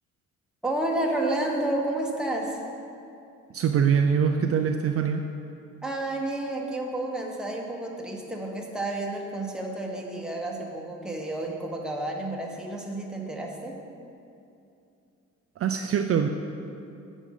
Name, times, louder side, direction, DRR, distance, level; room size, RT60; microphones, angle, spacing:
voice 1, 0.6-2.6 5.8-13.8, right 1 dB, ahead, -1 dB, 1.3 m, -30 dB
voice 2, 3.5-5.2 15.6-16.3, right 7 dB, 50° right, 5 dB, 0.5 m, -23 dB
8.3 x 6.3 x 5.5 m, 2.6 s
cardioid pair, 90°, 30 cm